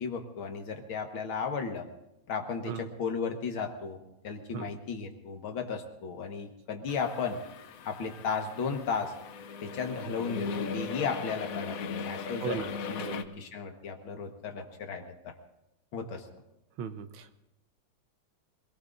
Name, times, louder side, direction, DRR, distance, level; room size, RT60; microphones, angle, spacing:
voice 1, 0.0-1.9 2.3-7.4 7.9-9.1 9.6-12.6 12.9-13.1 13.4-15.3 15.9-16.3, left 5 dB, 85° left, 4 dB, 2.3 m, -35 dB
sound 1, 6.9-13.2, left 5 dB, 60° left, 0.9 m, -38 dB
voice 2, 12.4-12.7 13.0-13.3 16.8-17.4, right 8 dB, 80° right, 9 dB, 1.7 m, -37 dB
25.5 x 18.5 x 2.6 m, 0.92 s
omnidirectional pair, 2.2 m